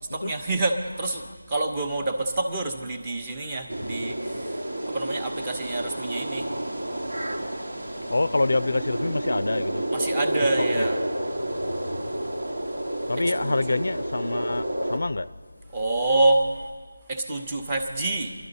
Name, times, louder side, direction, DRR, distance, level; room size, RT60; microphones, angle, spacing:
voice 1, 0.1-4.6 4.9-6.5 9.9-11.0 13.4-13.8 15.7-16.5 17.1-18.3, right 2 dB, 20° right, 0.8 m, -27 dB
sound 1, 3.7-15.0, right 1 dB, 80° right, 1.5 m, -30 dB
voice 2, 8.1-9.9 10.7-10.9 13.1-15.3, left 2 dB, 70° left, 0.4 m, -26 dB
21.5 x 12.0 x 4.1 m
figure-of-eight pair, 170°, 0 cm